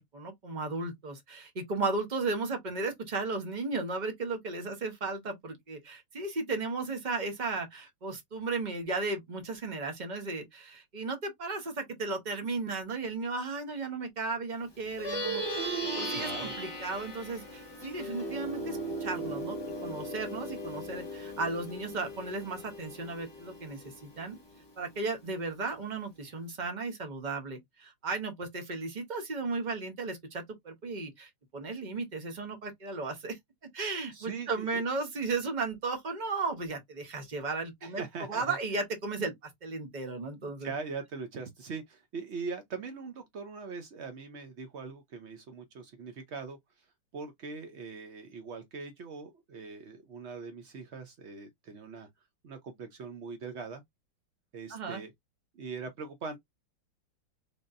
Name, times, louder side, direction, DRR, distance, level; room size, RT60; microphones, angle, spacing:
voice 1, 0.0-24.4 24.8-33.4 33.7-40.7 54.7-55.0, right 3 dB, 35° right, 0.7 m, -35 dB
Plucked string instrument, 14.8-24.6, right 1 dB, 15° left, 1.0 m, -37 dB
voice 2, 16.1-16.6 34.1-34.8 37.8-38.6 40.6-46.9 47.1-52.1 52.4-53.8 54.5-55.1 55.5-56.4, right 4 dB, 85° right, 0.6 m, -41 dB
3.8 x 3.5 x 2.5 m
omnidirectional pair, 2.1 m